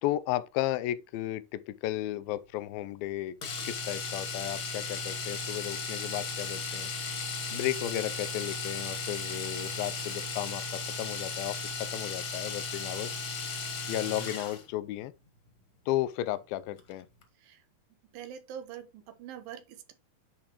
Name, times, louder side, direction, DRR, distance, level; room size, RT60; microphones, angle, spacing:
voice 1, 0.0-3.4 3.6-6.9 7.5-13.1 13.9-15.1 15.9-17.1, left 14 dB, 85° left, 2.3 m, -34 dB
Domestic sounds home sounds, 3.4-14.7 16.8-16.9 17.2-17.3, left 4 dB, 45° left, 1.9 m, -36 dB
voice 2, 18.1-19.9, right 9 dB, 75° right, 2.7 m, -44 dB
10.5 x 4.9 x 3.0 m
omnidirectional pair, 4.3 m